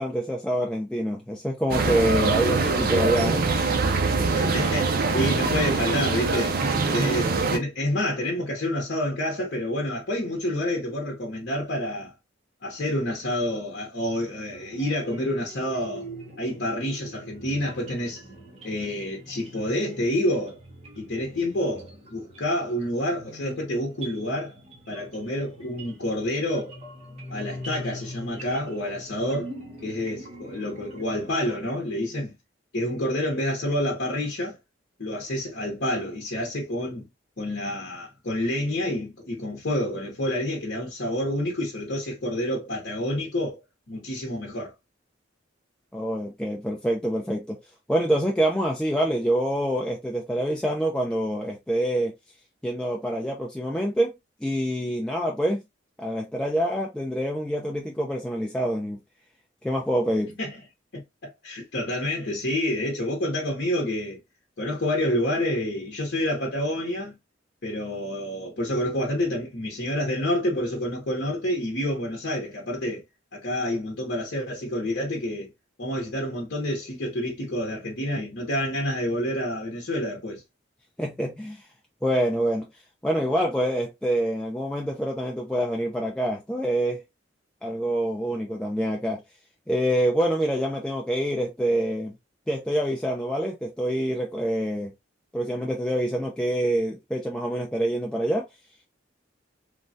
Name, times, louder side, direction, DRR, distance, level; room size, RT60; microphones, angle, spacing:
voice 1, 0.0-3.4 45.9-47.6 47.9-52.1 52.6-54.1 54.4-55.6 56.0-59.0 59.6-60.4 81.0-81.6 82.0-82.7 83.0-87.0 87.6-89.2 89.7-92.1 92.5-94.9 95.3-98.4, right 1 dB, 5° left, 0.4 m, -26 dB
sound 1, 1.7-7.6, right 3 dB, 50° right, 0.5 m, -23 dB
voice 2, 4.3-12.1 12.6-16.1 16.4-18.2 18.6-20.6 21.0-24.5 24.9-26.8 27.3-29.5 29.8-32.4 32.7-34.6 35.0-37.1 37.4-43.6 43.9-44.7 60.4-60.6 60.9-64.2 64.6-67.2 67.6-73.0 73.3-75.5 75.8-80.4, left 1 dB, 60° left, 0.8 m, -28 dB
sound 2, 14.5-31.3, equal, 35° right, 1.0 m, -43 dB
3.2 x 2.3 x 2.6 m
head